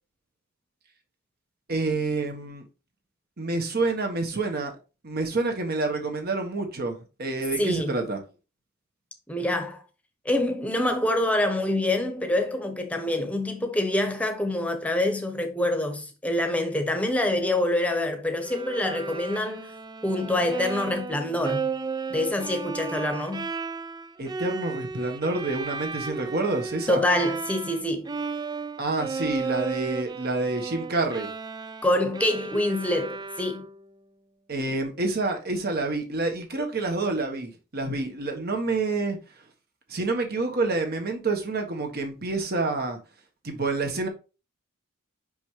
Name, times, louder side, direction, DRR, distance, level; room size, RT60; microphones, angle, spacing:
voice 1, 1.7-2.6 3.4-4.8 5.0-8.2 24.2-27.0 28.8-31.3 34.5-39.2 39.9-43.0 43.4-44.1, right 3 dB, 45° right, 1.3 m, -28 dB
voice 2, 7.6-8.0 9.3-9.8 10.2-19.7 20.0-21.7 22.1-23.5 26.9-28.1 31.8-33.6, left 1 dB, 5° left, 1.0 m, -26 dB
Bowed string instrument, 18.4-27.8 28.1-33.9, right 4 dB, 20° right, 0.3 m, -34 dB
5.5 x 5.4 x 3.2 m
head